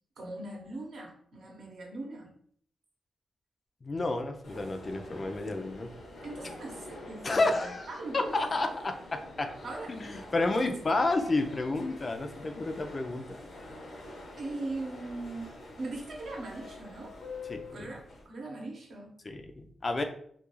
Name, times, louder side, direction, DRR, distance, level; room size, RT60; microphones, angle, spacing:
voice 1, 0.2-2.3 6.2-8.4 9.6-9.9 14.4-15.5 15.8-17.2 17.7-19.2, right 2 dB, 70° right, 0 dB, 0.7 m, -40 dB
voice 2, 3.8-5.9 7.2-7.9 8.1-9.5 9.9-13.5 17.5-17.9 19.2-20.0, left 2 dB, 40° left, 6 dB, 0.3 m, -31 dB
sound 1, 4.4-18.3, left 2 dB, 75° left, 0.7 m, -46 dB
2.4 x 2.3 x 2.9 m, 0.62 s
cardioid pair, 90°, 0 cm